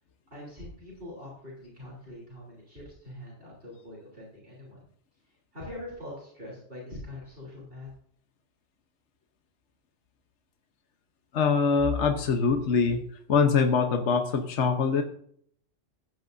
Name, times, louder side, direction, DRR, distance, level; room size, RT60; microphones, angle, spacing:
voice 1, 0.3-4.8 5.5-7.9, left 1 dB, 50° right, -4 dB, 3.6 m, -43 dB
voice 2, 11.3-13.0 13.3-15.0, left 5 dB, 70° left, 5 dB, 1.3 m, -23 dB
15.0 x 9.2 x 2.6 m, 0.62 s
omnidirectional pair, 1.3 m